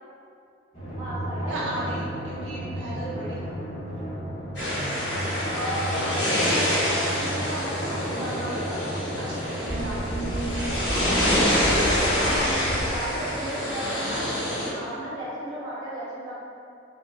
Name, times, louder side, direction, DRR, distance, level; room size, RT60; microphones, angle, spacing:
Drum, 0.7-13.8, equal, 35° left, 0.9 m, -35 dB
voice 1, 1.0-1.5 5.5-8.9 12.9-14.3 14.8-16.3, right 1 dB, 20° right, -10 dB, 0.6 m, -34 dB
voice 2, 1.5-3.4 8.2-8.6 9.2-11.3 14.7-15.0, right 1 dB, 75° right, -7 dB, 0.6 m, -36 dB
sound 1, 4.5-14.7, left 1 dB, 70° left, 1.3 m, -26 dB
sound 2, 9.7-13.2, right 1 dB, ahead, 1.2 m, -30 dB
2.8 x 2.4 x 2.2 m, 2.5 s
head